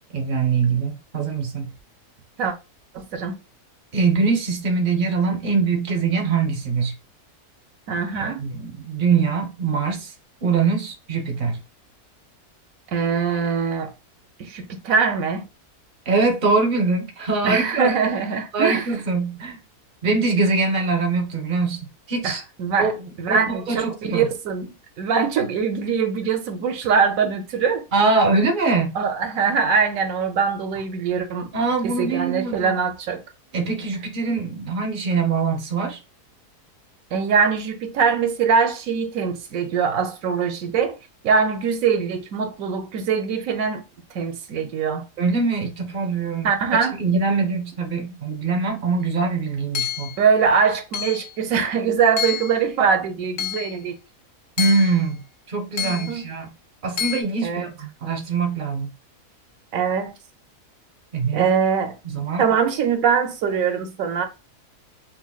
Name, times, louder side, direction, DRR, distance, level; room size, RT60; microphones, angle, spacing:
voice 1, 0.1-1.7 3.9-6.9 8.1-10.1 10.4-11.6 16.1-17.9 18.5-19.6 20.0-21.8 22.1-22.4 22.8-24.3 27.9-29.0 31.5-32.7 33.5-36.0 45.2-46.5 47.0-50.2 54.6-55.2 55.5-56.5 56.8-58.9 61.1-61.5 62.0-62.5, right 4 dB, 45° right, 0.7 m, -23 dB
voice 2, 2.9-3.4 7.9-8.5 12.9-13.9 14.4-15.5 17.4-18.9 22.2-22.9 23.2-24.7 25.0-27.9 29.0-31.5 31.8-33.2 37.1-41.0 41.2-43.8 44.1-45.0 46.4-47.0 50.2-53.9 55.8-56.2 57.4-57.7 59.7-60.1 61.3-61.9 62.4-64.3, right 6 dB, 70° right, 1.0 m, -22 dB
Hammer / Chink clink, 49.7-50.2 50.9-51.3 52.2-52.6 53.4-53.7 54.6-55.0 55.8-56.2 57.0-57.2, left 9 dB, 80° left, 1.1 m, -28 dB
5.6 x 2.2 x 2.3 m
omnidirectional pair, 1.6 m